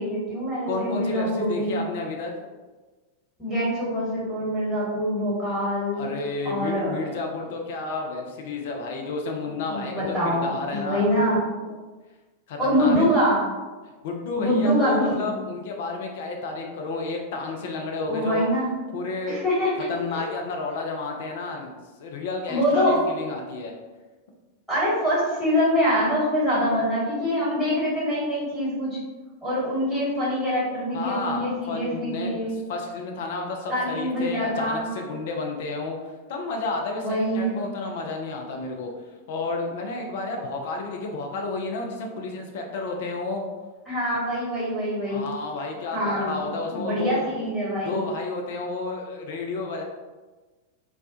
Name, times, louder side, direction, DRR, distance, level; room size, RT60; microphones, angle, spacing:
voice 1, 0.0-1.8 3.4-6.1 6.4-7.0 9.7-11.4 12.6-13.4 14.4-15.3 18.1-18.7 19.3-19.7 20.1-20.3 22.5-23.0 24.7-29.0 29.4-32.6 33.7-34.9 37.0-37.5 43.9-45.2 45.9-48.0, equal, ahead, -10 dB, 1.3 m, -24 dB
voice 2, 0.7-2.3 5.9-11.1 12.5-13.2 14.0-18.5 18.9-19.4 19.9-23.7 30.9-38.9 39.3-43.4 45.0-47.3 47.8-49.8, left 3 dB, 55° left, 2 dB, 0.4 m, -31 dB
2.2 x 2.1 x 2.7 m, 1.3 s
figure-of-eight pair, 90°, 0 cm